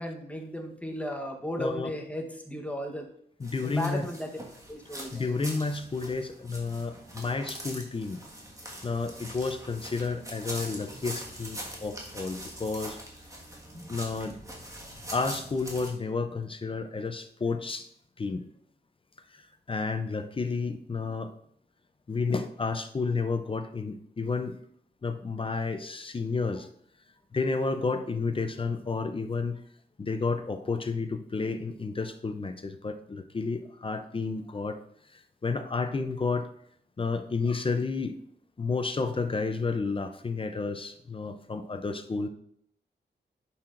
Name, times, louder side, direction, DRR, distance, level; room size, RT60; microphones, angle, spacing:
voice 1, 0.0-3.1 3.6-4.4 4.7-5.3, equal, 5° left, 2 dB, 1.0 m, -35 dB
voice 2, 1.6-1.9 3.4-4.1 5.1-8.2 8.8-13.0 13.9-14.4 15.1-17.9 18.2-18.4 19.7-21.3 22.1-24.6 25.0-26.7 27.3-29.6 30.0-34.8 35.1-36.5 37.0-38.1 38.6-42.3, left 4 dB, 30° left, 8 dB, 0.5 m, -31 dB
sound 1, 3.4-15.9, right 1 dB, 15° right, 1.6 m, -43 dB
11.0 x 5.7 x 2.5 m, 0.67 s
wide cardioid pair, 115°, 18 cm